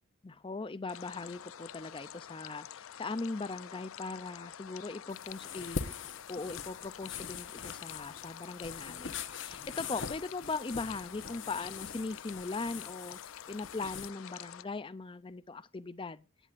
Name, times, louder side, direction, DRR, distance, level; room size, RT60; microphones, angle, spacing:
voice 1, 0.2-5.9 6.3-16.3, left 3 dB, 25° left, 0.5 m, -40 dB
sound 1, 0.9-14.6, left 10 dB, 80° left, 0.5 m, -48 dB
sound 2, 5.1-14.1, left 5 dB, 65° left, 1.2 m, -43 dB
18.0 x 9.2 x 2.5 m
head